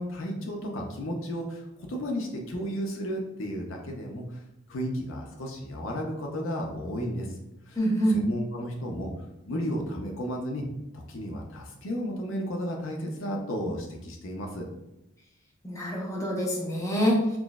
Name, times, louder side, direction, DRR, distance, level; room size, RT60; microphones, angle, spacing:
voice 1, 0.0-4.4 4.7-7.4 7.7-7.8 8.1-9.1 9.4-10.6 10.9-14.7, equal, 70° left, 1 dB, 0.6 m, -33 dB
voice 2, 7.8-8.2 15.6-17.4, equal, 15° left, -4 dB, 0.8 m, -25 dB
6.0 x 2.0 x 2.3 m, 0.89 s
head